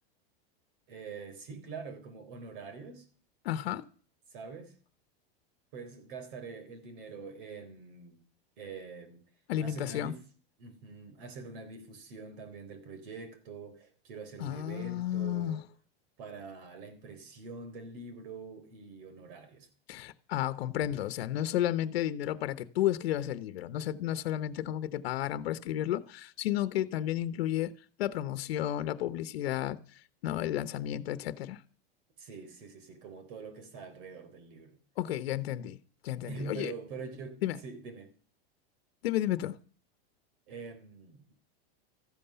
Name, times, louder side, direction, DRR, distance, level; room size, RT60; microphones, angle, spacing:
voice 1, 0.9-3.1 4.3-4.8 5.7-8.2 8.6-9.3 9.6-10.3 10.6-15.6 16.2-19.7 32.2-34.8 36.3-38.1 40.5-41.3, right 4 dB, 60° right, 3.8 m, -45 dB
voice 2, 3.4-3.8 9.5-10.1 14.4-15.6 19.9-27.7 28.0-29.8 30.2-31.6 35.0-35.8 36.0-36.7 37.4-37.6 39.0-39.6, left 12 dB, 80° left, 1.1 m, -32 dB
14.0 x 11.5 x 6.9 m
supercardioid pair, 165°, 30 cm